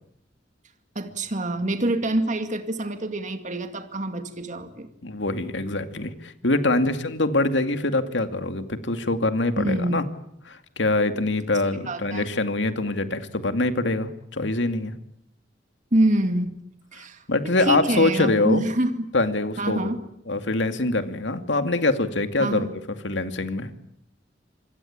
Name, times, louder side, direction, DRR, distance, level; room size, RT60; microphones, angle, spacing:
voice 1, 1.0-4.9 9.6-10.0 11.9-12.3 15.9-16.6 16.9-19.1 19.6-20.0 22.4-22.7, right 1 dB, 40° right, 7 dB, 2.3 m, -26 dB
voice 2, 5.0-10.0 10.5-14.9 17.3-18.7 19.1-19.9 20.3-22.7 23.0-23.7, left 2 dB, 75° left, 8 dB, 2.4 m, -24 dB
27.0 x 22.5 x 8.8 m, 0.73 s
head